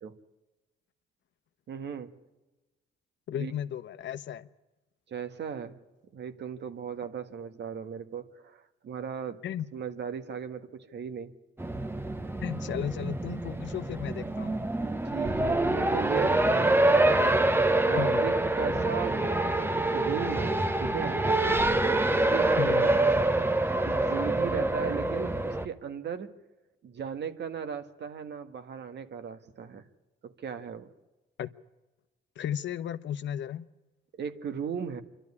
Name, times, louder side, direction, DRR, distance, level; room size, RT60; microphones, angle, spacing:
voice 1, 1.7-2.1 3.3-3.5 5.1-5.8 6.1-9.4 9.7-11.3 14.7-16.7 17.8-19.4 19.6-21.2 22.1-23.0 23.8-26.3 26.8-29.9 30.2-30.9 34.2-35.0, right 7 dB, 60° right, 1.7 m, -37 dB
voice 2, 3.3-4.5 9.4-9.7 12.4-14.5 18.0-18.3 22.6-22.9 31.4-31.5 32.4-33.6, left 10 dB, 70° left, 0.9 m, -34 dB
Race car auto racing, 11.6-25.7, right 2 dB, 10° right, 0.9 m, -26 dB
27.0 x 12.0 x 9.8 m
cardioid pair, 90°, 20 cm